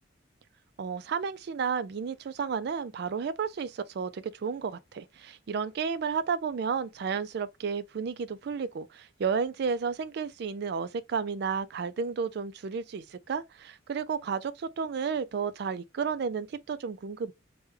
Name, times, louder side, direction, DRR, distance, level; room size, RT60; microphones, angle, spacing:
voice 1, 0.8-17.3, right 6 dB, 55° right, 0.3 m, -32 dB
3.3 x 2.2 x 3.2 m
head